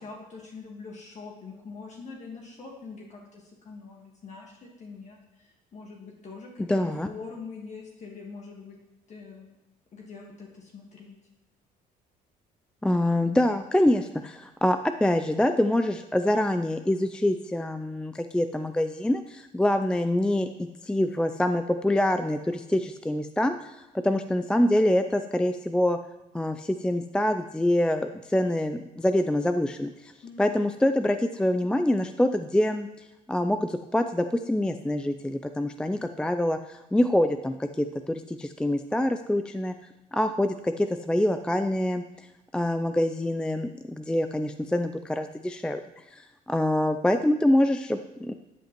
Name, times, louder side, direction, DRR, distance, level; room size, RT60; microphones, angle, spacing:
voice 1, 0.0-8.8 9.1-9.5 9.9-11.2 30.2-30.5, left 4 dB, 45° left, -1 dB, 1.5 m, -44 dB
voice 2, 6.7-7.1 12.8-23.8 24.0-26.0 26.3-30.1 30.4-39.7 40.1-42.3 42.5-48.3, left 1 dB, 5° left, 9 dB, 0.3 m, -25 dB
13.0 x 7.9 x 3.0 m, 1.0 s
cardioid pair, 110°, 17 cm